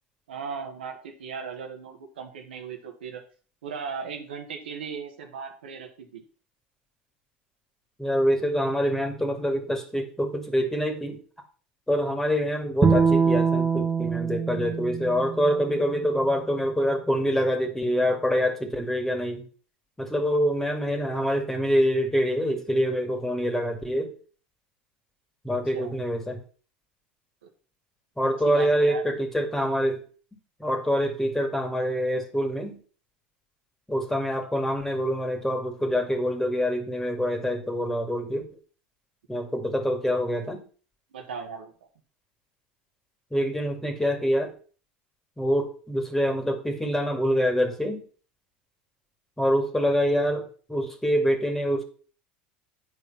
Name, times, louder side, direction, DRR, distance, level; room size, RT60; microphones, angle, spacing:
voice 1, 0.3-3.2 3.6-6.2 25.7-25.9 27.4-27.5 28.2-29.0 41.1-41.7, right 6 dB, 85° right, 4 dB, 1.6 m, -37 dB
voice 2, 8.0-11.2 11.9-19.4 20.0-24.1 25.4-26.4 28.2-30.0 30.6-32.8 33.9-38.4 39.3-40.6 43.3-44.5 45.4-48.0 49.4-51.8, equal, 5° left, 4 dB, 2.2 m, -25 dB
Bowed string instrument, 12.8-16.1, right 5 dB, 25° right, 1.8 m, -24 dB
9.5 x 4.8 x 5.5 m, 0.41 s
hypercardioid pair, 85°, 5 cm